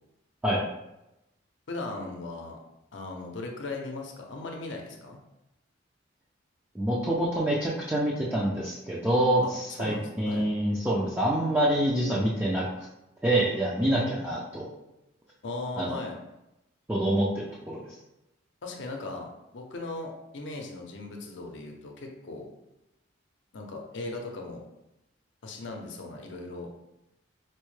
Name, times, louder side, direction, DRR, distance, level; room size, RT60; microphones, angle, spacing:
voice 1, 1.7-2.6 2.9-5.2 9.4-9.5 9.8-10.5 15.4-16.2 18.6-22.5 23.5-24.6 25.4-26.7, left 2 dB, 65° left, 2 dB, 0.6 m, -38 dB
voice 2, 6.7-12.9 13.2-14.7 15.8-16.0 16.9-17.8, right 1 dB, 10° right, -6 dB, 0.4 m, -26 dB
4.3 x 2.1 x 3.1 m, 0.90 s
head